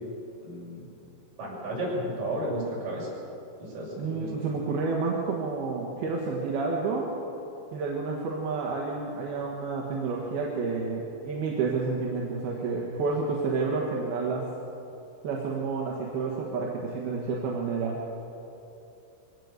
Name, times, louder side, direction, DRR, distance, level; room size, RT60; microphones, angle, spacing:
voice 1, 0.4-0.9 1.4-3.1 3.6-4.3, right 1 dB, 45° right, -5 dB, 8.0 m, -33 dB
voice 2, 4.0-7.1 7.7-14.5 15.2-18.0, right 4 dB, 60° right, -2 dB, 3.2 m, -30 dB
23.0 x 18.0 x 6.7 m, 2.8 s
omnidirectional pair, 5.4 m